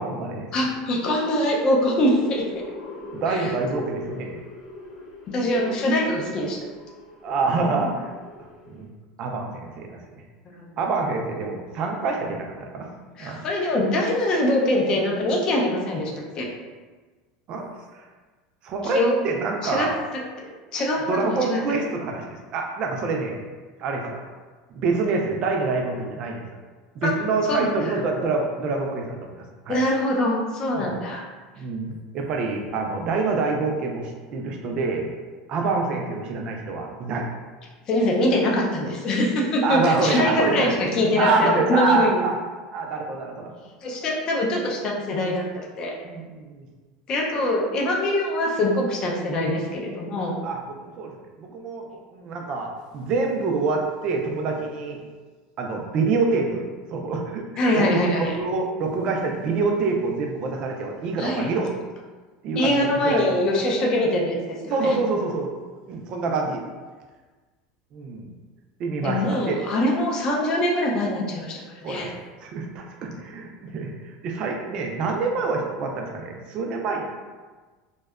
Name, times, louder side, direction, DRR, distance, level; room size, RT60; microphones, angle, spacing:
voice 1, 0.0-0.5 3.1-4.4 7.2-8.1 8.7-8.9 9.2-10.0 10.8-12.9 13.2-13.4 17.5-17.7 18.6-19.9 21.1-23.4 23.8-24.2 24.7-26.4 27.0-29.3 29.7-29.8 30.8-30.9 31.6-35.1 35.5-37.3 39.6-40.7 41.1-42.3 42.7-43.5 46.0-46.7 50.4-51.1 51.4-51.9 52.1-55.0 55.6-56.6 56.9-57.5 57.7-61.7 62.4-63.3 64.7-65.5 65.9-66.6 67.9-68.3 68.8-69.6 71.8-72.1 72.4-73.9 74.2-77.2, right 3 dB, 35° right, 1 dB, 0.3 m, -26 dB
voice 2, 0.5-2.4 3.3-3.5 5.3-6.6 10.5-10.7 13.2-16.5 18.8-19.1 19.6-19.9 20.7-21.8 27.0-27.1 27.5-28.0 29.7-31.2 37.9-42.2 43.8-45.9 47.1-50.4 57.6-58.3 61.2-61.5 62.6-64.9 69.0-72.1, left 1 dB, 30° left, -1 dB, 0.4 m, -23 dB
sound 1, 1.6-8.9, left 2 dB, 70° left, 0.7 m, -40 dB
2.7 x 2.1 x 2.3 m, 1.3 s
supercardioid pair, 160°, 3 cm